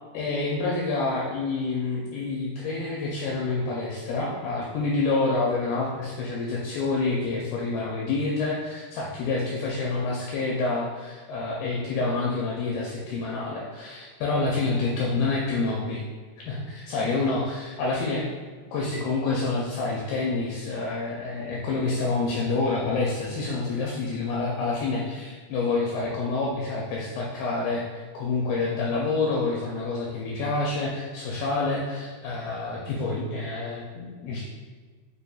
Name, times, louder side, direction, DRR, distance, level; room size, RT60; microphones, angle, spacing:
voice 1, 0.1-16.0 16.4-18.3 18.7-34.5, left 3 dB, 80° left, -3 dB, 2.1 m, -28 dB
6.6 x 2.5 x 2.3 m, 1.5 s
omnidirectional pair, 4.6 m